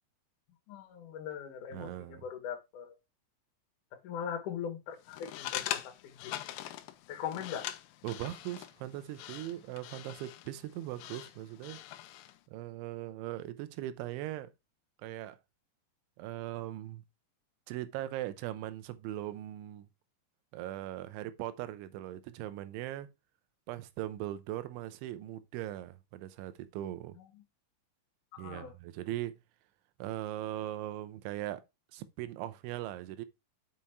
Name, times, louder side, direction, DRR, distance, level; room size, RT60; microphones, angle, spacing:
voice 1, 0.7-3.0 4.0-5.9 6.2-6.3 7.1-7.7 27.2-27.3 28.3-28.7, left 8 dB, 55° left, 2.6 m, -40 dB
voice 2, 1.7-2.2 8.0-11.8 12.5-14.5 15.0-15.4 16.2-17.0 17.7-19.9 20.5-23.1 23.7-27.2 28.4-29.4 30.0-31.6 31.9-33.3, right 14 dB, 85° right, 3.2 m, -39 dB
sound 1, 5.1-12.4, left 13 dB, 80° left, 2.7 m, -42 dB
7.3 x 5.4 x 4.7 m
omnidirectional pair, 5.3 m